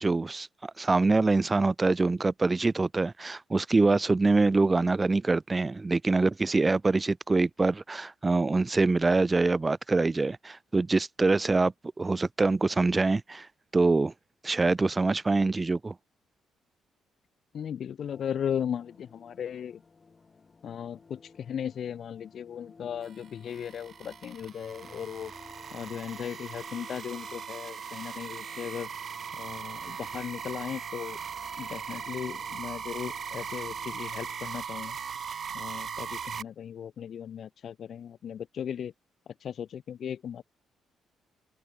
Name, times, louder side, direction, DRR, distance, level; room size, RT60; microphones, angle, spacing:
voice 1, 0.0-13.5 13.7-14.1 14.4-15.9, right 3 dB, 25° right, 0.4 m, -25 dB
voice 2, 17.5-19.8 20.6-25.3 25.7-28.9 29.3-31.2 31.6-35.0 35.5-38.9 39.4-40.4, left 8 dB, 60° left, 0.8 m, -37 dB
sound 1, 18.1-34.4, left 4 dB, 30° left, 3.7 m, -56 dB
sound 2, 23.0-36.4, right 7 dB, 50° right, 1.4 m, -39 dB
cardioid pair, 90°, 0 cm